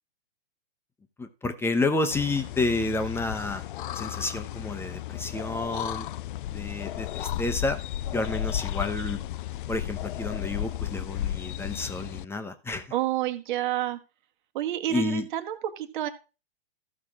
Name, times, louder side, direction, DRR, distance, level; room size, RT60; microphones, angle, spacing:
voice 1, 1.2-3.6 3.9-6.1 6.5-7.8 8.1-9.2 9.7-12.9 14.9-15.2, left 3 dB, 10° left, 9 dB, 0.8 m, -30 dB
sound 1, 2.1-12.3, left 12 dB, 55° left, 0.5 m, -34 dB
voice 2, 12.9-14.0 14.5-16.1, right 13 dB, 50° right, 7 dB, 1.5 m, -29 dB
14.5 x 6.0 x 3.6 m, 0.31 s
hypercardioid pair, 125°, 31 cm